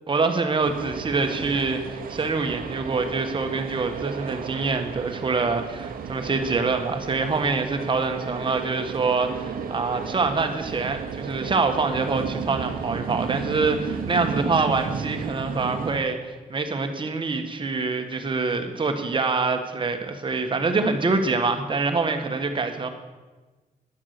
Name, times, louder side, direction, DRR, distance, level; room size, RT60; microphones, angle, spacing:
voice 1, 0.1-22.9, right 4 dB, 35° right, 6 dB, 1.4 m, -25 dB
sound 1, 0.6-16.0, right 6 dB, 75° right, 1.0 m, -33 dB
11.0 x 7.3 x 6.6 m, 1.3 s
cardioid pair, 90°, 15 cm